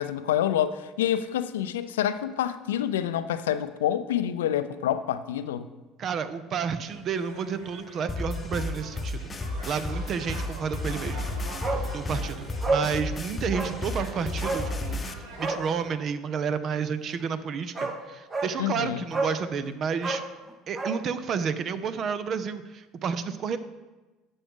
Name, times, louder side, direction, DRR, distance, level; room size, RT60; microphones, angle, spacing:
voice 1, 0.0-5.7 18.6-19.0, left 10 dB, 80° left, 12 dB, 0.4 m, -27 dB
voice 2, 6.0-9.2 9.7-11.2 11.8-15.1 15.4-20.2 20.7-23.6, right 6 dB, 50° right, 13 dB, 0.6 m, -31 dB
sound 1, 6.8-15.9, right 2 dB, 75° right, 1.5 m, -44 dB
sound 2, 8.1-15.1, left 2 dB, 25° left, 0.8 m, -32 dB
Bark, 11.6-11.9 12.2-12.3 12.6-12.9 13.5-13.8 14.4-14.7 15.3-15.6 17.2-17.3 17.7-18.0 18.3-18.6 19.1-19.4 19.9-21.0 21.3-21.4, right 3 dB, 30° right, 1.2 m, -29 dB
10.5 x 7.0 x 3.7 m, 1.2 s
hypercardioid pair, 65°, 0 cm